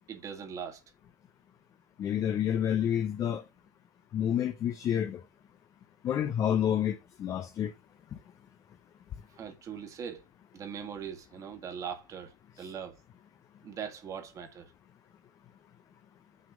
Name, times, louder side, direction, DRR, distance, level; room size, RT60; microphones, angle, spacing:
voice 1, 0.1-0.8 9.3-10.2 10.5-12.9 13.6-14.7, right 7 dB, 30° right, 1.7 m, -41 dB
voice 2, 2.0-3.4 4.1-5.2 6.0-7.7, left 9 dB, 30° left, 0.6 m, -29 dB
6.2 x 3.6 x 6.0 m
supercardioid pair, 120°, 11 cm